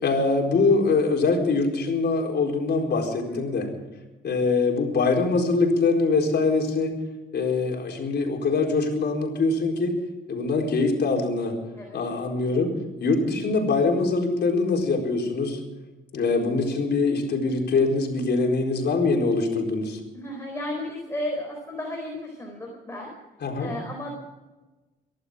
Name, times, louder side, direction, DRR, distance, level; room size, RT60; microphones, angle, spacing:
voice 1, 0.0-3.7 4.2-7.0 7.3-10.0 10.3-11.6 11.9-15.6 16.1-20.0 23.4-23.7, left 3 dB, 60° left, 2 dB, 4.4 m, -23 dB
voice 2, 3.3-3.8 11.7-12.0 20.1-23.1 23.6-24.1, left 1 dB, 15° left, 0 dB, 4.6 m, -34 dB
23.5 x 12.0 x 5.1 m, 1.1 s
cardioid pair, 90°, 20 cm